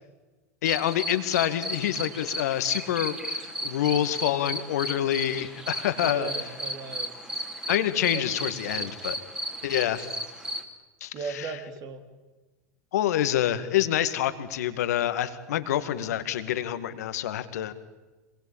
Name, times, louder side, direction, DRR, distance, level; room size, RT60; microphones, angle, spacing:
voice 1, 0.6-6.3 7.7-9.2 9.6-10.1 11.0-11.5 12.9-17.7, left 11 dB, 75° left, 11 dB, 2.2 m, -27 dB
sound 1, 0.6-10.6, equal, 10° right, 3.5 m, -34 dB
voice 2, 6.0-7.1 7.9-9.0 11.1-12.0, right 5 dB, 45° right, 7 dB, 3.6 m, -38 dB
26.5 x 22.0 x 8.9 m, 1.2 s
hypercardioid pair, 100°, 9 cm